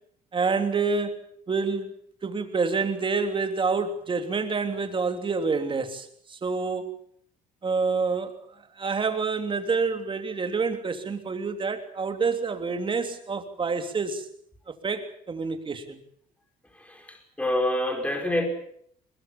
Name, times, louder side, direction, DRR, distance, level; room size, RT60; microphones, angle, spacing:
voice 1, 0.3-1.2 1.5-1.9 2.2-6.9 7.6-8.3 8.8-14.3 14.8-16.0, right 4 dB, 30° right, 7 dB, 3.2 m, -27 dB
voice 2, 16.7-18.5, left 1 dB, 10° left, 4 dB, 5.0 m, -27 dB
22.0 x 21.0 x 7.3 m, 0.65 s
cardioid pair, 110°, 17 cm